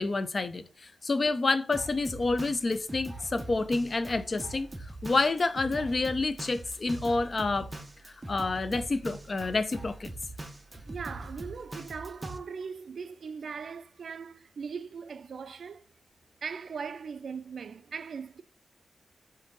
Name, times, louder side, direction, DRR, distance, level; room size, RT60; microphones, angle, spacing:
voice 1, 0.0-7.7 8.0-10.1, left 3 dB, 40° left, 0.4 m, -29 dB
Drum kit, 1.7-12.4, right 2 dB, 20° right, 0.7 m, -42 dB
voice 2, 10.9-15.8 16.4-18.4, right 5 dB, 75° right, 0.3 m, -39 dB
5.1 x 2.6 x 3.9 m
wide cardioid pair, 135°, 0 cm